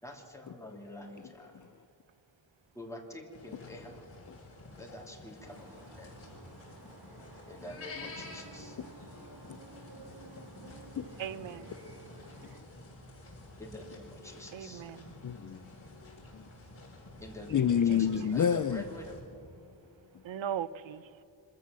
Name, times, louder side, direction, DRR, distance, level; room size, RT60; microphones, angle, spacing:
voice 1, 0.0-1.5 2.7-4.0 4.8-6.2 7.5-8.8 13.6-14.8 17.2-19.2, left 1 dB, 5° left, 2.7 m, -47 dB
sound 1, 3.3-19.2, left 2 dB, 30° left, 6.4 m, -50 dB
sound 2, 5.4-12.6, right 2 dB, 55° right, 2.0 m, -53 dB
voice 2, 9.1-9.6 10.6-11.1 12.4-12.5 15.2-15.7 16.0-16.4 17.5-18.8, left 8 dB, 45° left, 0.5 m, -30 dB
voice 3, 11.2-11.7 14.5-15.1 17.9-18.3 20.2-21.1, right 9 dB, 90° right, 0.7 m, -38 dB
25.0 x 14.0 x 7.5 m
wide cardioid pair, 130°, 44 cm